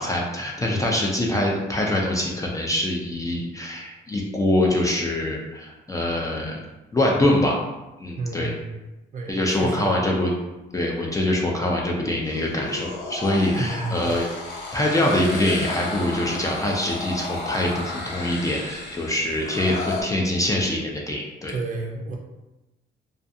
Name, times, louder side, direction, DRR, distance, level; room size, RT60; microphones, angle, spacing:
voice 1, 0.0-6.6 6.9-7.6 8.0-8.5 9.3-10.3 10.7-14.3 14.7-21.5, left 1 dB, 15° left, -2 dB, 0.4 m, -24 dB
voice 2, 8.2-8.8 9.1-9.9 13.5-14.0 21.5-22.2, right 3 dB, 40° right, 0 dB, 0.5 m, -31 dB
sound 1, 12.2-20.0, left 2 dB, 65° left, 0.7 m, -33 dB
2.4 x 2.3 x 2.6 m, 1.0 s
cardioid pair, 90°, 20 cm